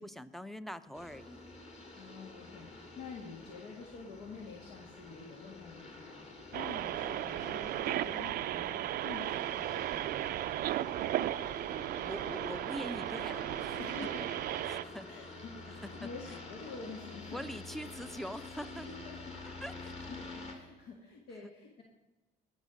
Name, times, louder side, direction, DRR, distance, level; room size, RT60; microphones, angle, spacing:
voice 1, 0.0-1.4 12.0-13.8 14.6-15.1 17.3-18.9 19.6-19.9, equal, ahead, 13 dB, 0.6 m, -43 dB
sound 1, 0.9-20.5, left 3 dB, 40° left, 2.5 m, -48 dB
voice 2, 2.0-10.4 13.8-14.3 15.1-18.0 18.7-19.4 19.7-21.8, left 4 dB, 80° left, 0 dB, 1.9 m, -48 dB
sound 2, 6.5-14.8, right 13 dB, 65° right, 0.4 m, -35 dB
19.0 x 6.4 x 5.0 m, 1.1 s
cardioid pair, 110°, 17 cm